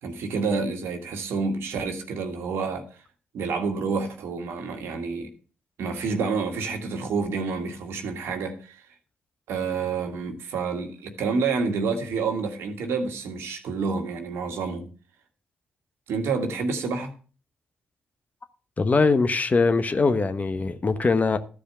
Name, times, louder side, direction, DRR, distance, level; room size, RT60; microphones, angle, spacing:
voice 1, 0.0-2.8 3.3-5.3 5.8-8.8 9.5-14.9 16.1-17.1, right 4 dB, 70° right, 1.8 m, -28 dB
voice 2, 18.8-21.4, left 4 dB, 35° left, 1.2 m, -22 dB
13.0 x 5.0 x 6.9 m
hypercardioid pair, 45°, 4 cm